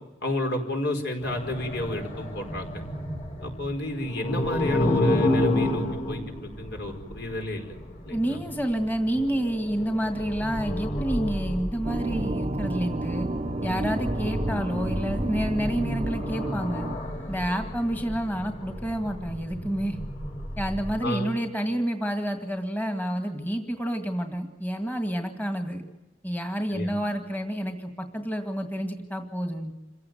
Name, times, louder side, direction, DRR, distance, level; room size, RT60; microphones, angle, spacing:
voice 1, 0.2-2.7 3.4-7.7 8.0-8.4 21.0-21.3 26.7-26.9, left 1 dB, 65° left, 4 dB, 4.9 m, -31 dB
sound 1, 1.2-21.1, left 1 dB, 45° left, 6.5 m, -31 dB
voice 2, 8.1-13.3 13.6-16.9 17.3-20.0 20.6-25.8 26.2-29.7, equal, 10° left, 5 dB, 2.0 m, -29 dB
sound 2, 11.8-17.0, right 2 dB, 35° right, 0.8 m, -31 dB
27.5 x 16.5 x 9.3 m, 1.0 s
head